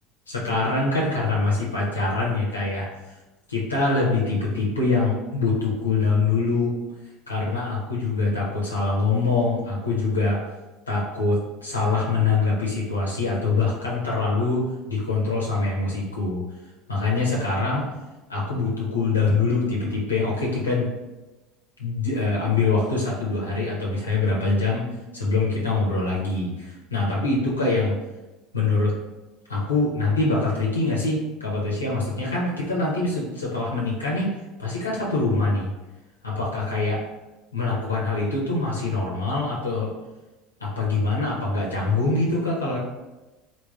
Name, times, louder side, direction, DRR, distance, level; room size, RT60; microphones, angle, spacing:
voice 1, 0.3-2.9 3.5-6.7 7.3-10.4 10.9-16.4 16.9-17.8 18.3-20.9 21.8-24.9 25.1-27.9 28.5-28.9 29.5-34.3 34.6-35.7 36.2-37.0 37.5-39.9 40.6-42.8, left 3 dB, 85° left, -4 dB, 0.5 m, -24 dB
3.2 x 2.2 x 2.3 m, 1.1 s
figure-of-eight pair, 70°, 0 cm